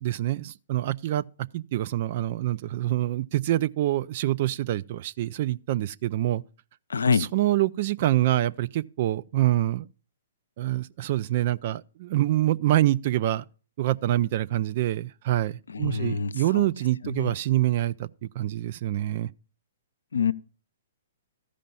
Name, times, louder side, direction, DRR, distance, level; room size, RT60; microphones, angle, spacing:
voice 1, 0.0-1.2 1.5-6.4 7.1-9.9 10.6-13.4 13.8-19.3, right 14 dB, 50° right, 0.4 m, -26 dB
voice 2, 6.9-7.3 15.7-16.7 17.0-17.3 20.1-20.3, left 5 dB, 80° left, 0.5 m, -26 dB
13.5 x 5.1 x 5.4 m
hypercardioid pair, 125°, 0 cm